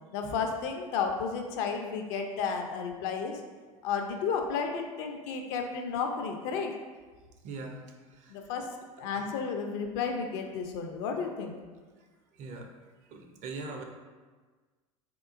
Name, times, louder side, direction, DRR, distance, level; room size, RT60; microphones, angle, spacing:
voice 1, 0.1-3.4 3.8-6.7 8.3-8.7 9.0-11.5, left 5 dB, 55° left, 4 dB, 0.4 m, -32 dB
voice 2, 7.4-7.8 8.1-8.7 9.1-9.2 12.3-12.7 13.1-13.8, right 3 dB, 40° right, 3 dB, 0.5 m, -41 dB
3.6 x 2.4 x 2.4 m, 1.4 s
hypercardioid pair, 75°, 18 cm